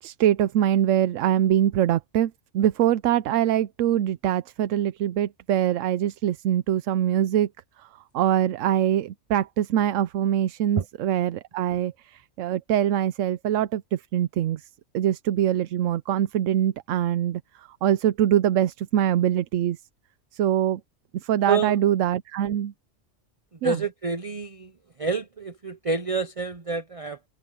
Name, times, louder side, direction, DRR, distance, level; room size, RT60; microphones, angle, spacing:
voice 1, 0.0-7.5 7.8-7.9 8.1-14.6 14.9-19.8 20.3-20.8 21.1-22.7 23.6-23.8, right 11 dB, 90° right, 1.0 m, -23 dB
voice 2, 23.6-24.7 25.0-27.3, right 4 dB, 35° right, 0.7 m, -27 dB
omnidirectional pair, 1.3 m